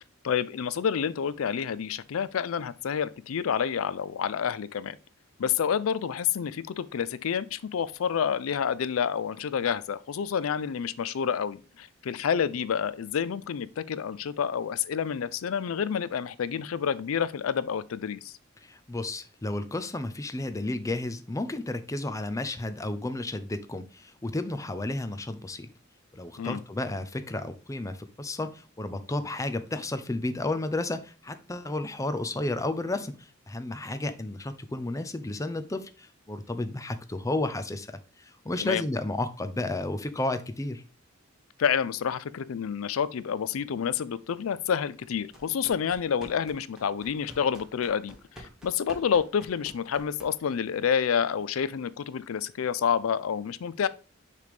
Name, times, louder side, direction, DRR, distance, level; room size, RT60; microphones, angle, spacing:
voice 1, 0.2-5.0 5.4-18.3 26.4-26.6 38.6-38.8 41.6-53.9, left 7 dB, 85° left, 0.4 m, -29 dB
voice 2, 18.6-25.7 26.1-40.8, left 2 dB, 15° left, 0.5 m, -32 dB
sound 1, 45.3-50.6, equal, 5° right, 1.5 m, -50 dB
6.6 x 3.4 x 5.0 m
head